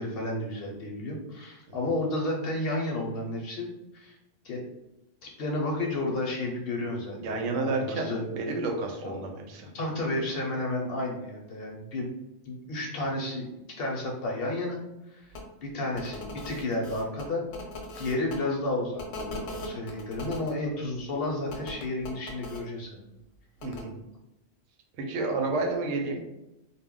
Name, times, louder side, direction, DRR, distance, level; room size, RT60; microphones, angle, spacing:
voice 1, 0.0-4.2 4.4-4.6 5.2-7.2 7.5-8.2 9.0-9.2 9.7-12.1 12.5-14.8 15.1-15.3 15.6-17.4 18.0-23.0, left 2 dB, 55° left, -1 dB, 0.8 m, -32 dB
voice 2, 7.2-9.7 23.6-24.0 25.0-26.2, right 3 dB, 80° right, 2 dB, 0.9 m, -30 dB
sound 1, 15.3-15.4 15.9-18.4 19.0-20.5 21.5-22.6 23.6-23.8, left 1 dB, 85° left, 1.0 m, -39 dB
2.2 x 2.1 x 3.6 m, 0.93 s
omnidirectional pair, 1.3 m